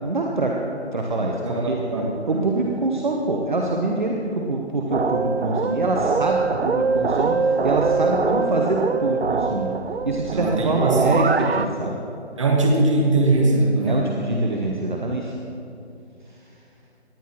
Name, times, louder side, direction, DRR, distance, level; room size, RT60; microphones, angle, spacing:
voice 1, 0.0-0.5 0.9-1.8 2.3-9.7 10.0-12.0 13.8-15.3, right 2 dB, 45° right, 0 dB, 1.0 m, -25 dB
voice 2, 1.4-2.4 10.3-11.1 12.4-14.1, right 2 dB, 30° right, 0 dB, 1.5 m, -21 dB
sound 1, 4.9-11.7, right 4 dB, 65° right, 0.6 m, -23 dB
18.0 x 10.5 x 3.0 m, 2.7 s
figure-of-eight pair, 155°, 33 cm